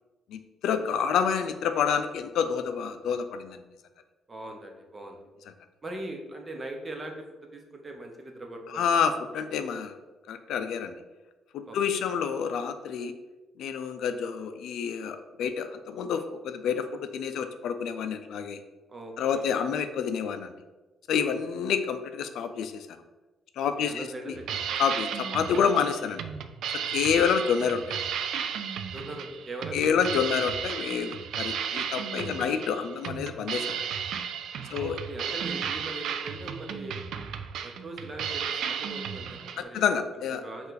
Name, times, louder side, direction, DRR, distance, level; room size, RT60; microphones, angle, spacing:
voice 1, 0.3-3.6 8.7-10.0 10.3-10.9 11.5-13.1 13.6-18.6 19.2-20.5 21.1-22.9 23.6-24.4 24.8-26.2 26.9-28.0 29.7-33.8 34.7-35.0 39.5-40.4, left 7 dB, 80° left, 9 dB, 0.3 m, -28 dB
voice 2, 4.3-5.2 5.8-7.1 7.5-9.0 11.6-12.0 18.9-19.8 21.2-21.4 23.8-24.8 25.7-25.9 28.9-30.1 32.3-32.5 34.7-37.0 37.6-39.9 40.3-40.7, right 1 dB, 30° right, 3 dB, 0.8 m, -40 dB
sound 1, 24.3-39.6, right 8 dB, 75° right, 0.3 m, -34 dB
5.3 x 2.4 x 3.9 m, 1.2 s
cardioid pair, 85°, 0 cm